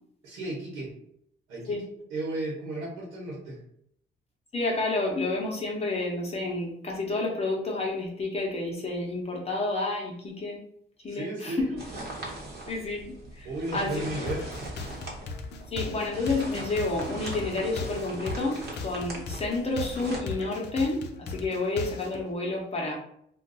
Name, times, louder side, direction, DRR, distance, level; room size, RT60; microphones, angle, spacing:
voice 1, 0.2-0.9 1.5-1.8 2.1-3.6 11.1-11.7 13.4-14.4, right 2 dB, 90° right, -5 dB, 1.1 m, -34 dB
voice 2, 4.5-10.6 11.0-11.7 12.7-14.3 15.7-22.9, left 2 dB, 30° left, -2 dB, 0.8 m, -30 dB
sound 1, 11.8-20.2, right 2 dB, 55° right, 1.0 m, -40 dB
sound 2, 14.3-22.2, left 4 dB, 60° left, 0.5 m, -38 dB
2.5 x 2.3 x 3.9 m, 0.70 s
cardioid pair, 90°, 20 cm